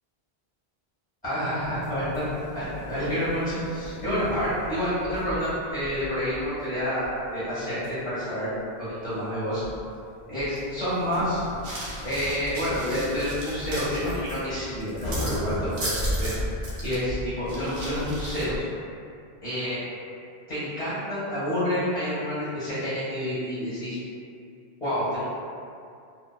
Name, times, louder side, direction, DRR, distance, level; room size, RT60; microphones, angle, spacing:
voice 1, 1.2-2.2 2.5-9.6 10.3-11.4 12.0-16.3 16.8-18.6 19.4-19.8 20.5-24.0 24.8-25.2, equal, 10° left, -12 dB, 0.8 m, -28 dB
sound 1, 1.6-18.6, equal, 65° left, 0.9 m, -37 dB
sound 2, 11.6-14.4 14.8-15.4 15.7-16.4 16.6-16.9 17.5-18.4, right 1 dB, 80° right, 1.0 m, -36 dB
2.7 x 2.0 x 2.2 m, 2.4 s
omnidirectional pair, 1.0 m